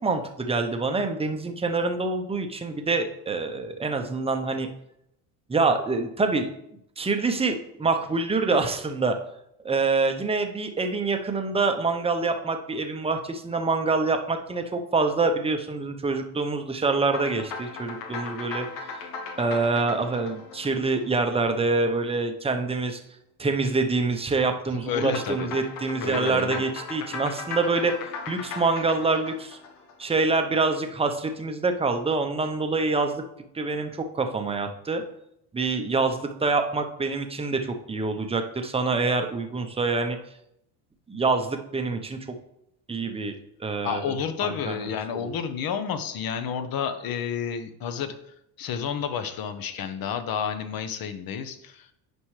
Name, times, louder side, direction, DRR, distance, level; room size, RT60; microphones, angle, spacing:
voice 1, 0.0-4.7 5.5-6.5 7.0-9.2 9.6-18.7 19.4-23.0 23.4-27.9 28.3-29.6 30.0-33.2 33.5-35.0 35.5-40.2 41.1-42.2 42.9-43.3 43.6-44.1 44.4-44.9 45.1-45.3, right 3 dB, 10° right, 5 dB, 0.8 m, -26 dB
sound 1, 17.0-21.7 25.0-30.4, left 4 dB, 80° left, 1.5 m, -37 dB
voice 2, 24.7-25.5 26.0-26.6 43.8-48.1 48.6-51.9, left 7 dB, 45° left, 9 dB, 1.0 m, -30 dB
9.4 x 5.2 x 3.3 m, 0.78 s
supercardioid pair, 100°, 49 cm